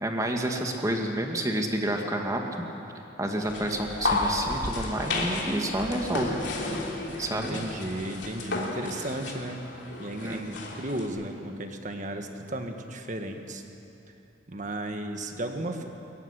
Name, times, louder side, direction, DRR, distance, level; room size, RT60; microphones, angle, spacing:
voice 1, 0.0-2.6 3.2-6.4 7.2-7.6 10.2-10.6, right 1 dB, 20° right, 2 dB, 1.9 m, -29 dB
sound 1, 3.4-11.1, left 2 dB, 65° left, 3.3 m, -32 dB
voice 2, 7.3-9.7 10.0-13.6 14.5-15.9, right 1 dB, 40° right, 5 dB, 1.7 m, -34 dB
23.5 x 14.5 x 9.9 m, 2.9 s
head